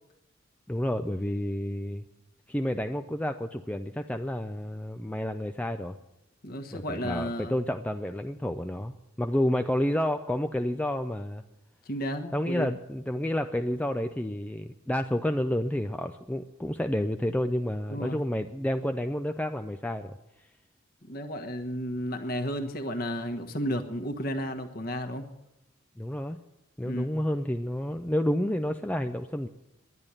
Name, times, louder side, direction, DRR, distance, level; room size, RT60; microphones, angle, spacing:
voice 1, 0.7-2.0 2.5-6.0 6.7-11.4 12.3-20.2 26.0-26.4 26.8-29.5, left 1 dB, 5° left, 6 dB, 0.4 m, -30 dB
voice 2, 6.4-7.5 11.9-12.7 17.9-18.2 21.1-25.3 26.8-27.0, equal, 45° left, 7 dB, 1.4 m, -33 dB
11.0 x 10.5 x 9.8 m, 0.91 s
head